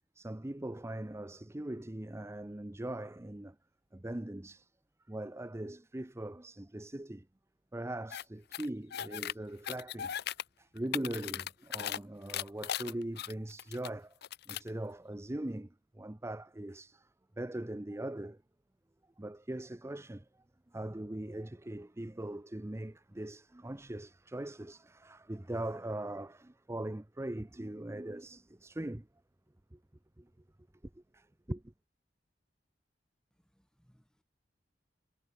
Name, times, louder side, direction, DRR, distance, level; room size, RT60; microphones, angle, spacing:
voice 1, 0.1-3.6 3.9-4.7 5.1-7.3 7.7-10.1 10.6-14.1 14.5-17.1 17.4-18.4 19.2-20.3 20.7-29.1 29.7-29.8 30.2-30.3 30.9-31.7, right 1 dB, 15° right, 0.7 m, -41 dB
sound 1, 8.1-8.2 8.5-9.3 9.6-10.4 10.8-12.0 12.3-13.9 14.2-14.7, left 10 dB, 60° left, 0.6 m, -38 dB
voice 2, 33.4-34.2, equal, 5° left, 7.4 m, -70 dB
head